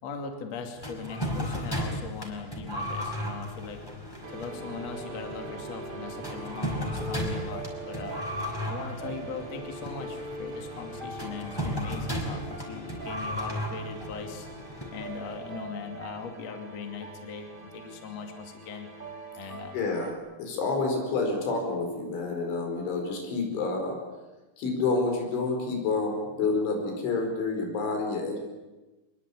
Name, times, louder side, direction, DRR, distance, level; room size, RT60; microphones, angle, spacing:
voice 1, 0.0-3.8 4.3-8.2 8.6-14.5 14.9-18.9 19.4-19.8, left 5 dB, 40° left, 4 dB, 3.1 m, -40 dB
sound 1, 0.8-15.5, equal, 5° left, 4.3 m, -35 dB
sound 2, 4.2-20.1, right 2 dB, 70° right, 0.5 m, -42 dB
voice 2, 19.7-20.1 20.4-24.0 24.6-28.4, left 3 dB, 85° left, 3 dB, 7.3 m, -28 dB
25.5 x 22.0 x 8.5 m, 1.1 s
omnidirectional pair, 5.2 m